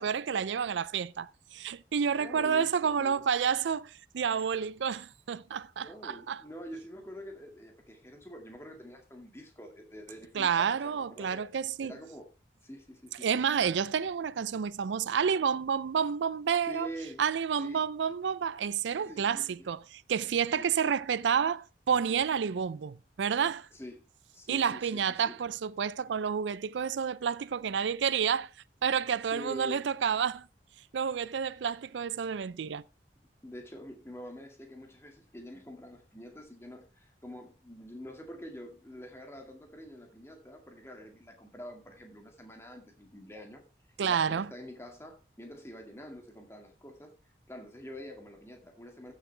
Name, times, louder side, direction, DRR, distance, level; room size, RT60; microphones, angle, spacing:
voice 1, 0.0-6.4 10.3-11.9 13.2-16.9 17.2-23.7 24.5-28.5 28.8-30.5 30.9-32.8 44.0-44.5, right 7 dB, 90° right, 0.4 m, -30 dB
voice 2, 2.1-3.2 5.8-11.4 11.8-12.3 12.6-13.4 16.6-17.3 17.6-17.9 19.0-19.7 20.5-21.0 23.7-24.0 24.3-25.3 29.3-29.7 33.4-43.7 44.0-47.1 47.5-49.1, equal, 15° left, 2.0 m, -46 dB
15.0 x 6.5 x 3.3 m
head